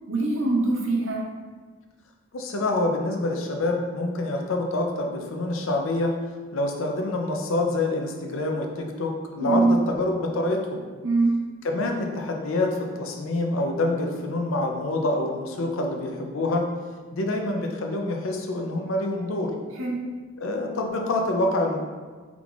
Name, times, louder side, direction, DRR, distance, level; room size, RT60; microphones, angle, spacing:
voice 1, 0.1-1.2 9.4-9.8 11.0-11.3 19.8-20.0, right 2 dB, 65° right, -1 dB, 0.7 m, -22 dB
voice 2, 2.3-6.1 6.5-10.8 11.6-16.7 17.1-19.5 20.4-21.8, left 2 dB, 75° left, 2 dB, 0.6 m, -26 dB
4.7 x 3.5 x 2.5 m, 1.4 s
head